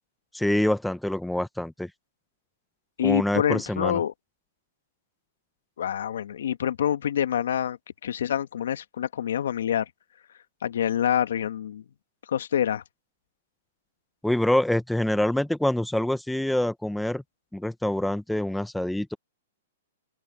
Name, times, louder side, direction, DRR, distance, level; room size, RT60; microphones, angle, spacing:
voice 1, 0.3-1.9 3.0-4.0 14.2-17.2 17.5-19.1, left 1 dB, ahead, 1.2 m, -25 dB
voice 2, 3.0-4.1 5.8-9.9 10.6-11.8 12.3-12.8, left 9 dB, 75° left, 1.7 m, -26 dB
open air
hypercardioid pair, 130°, 0 cm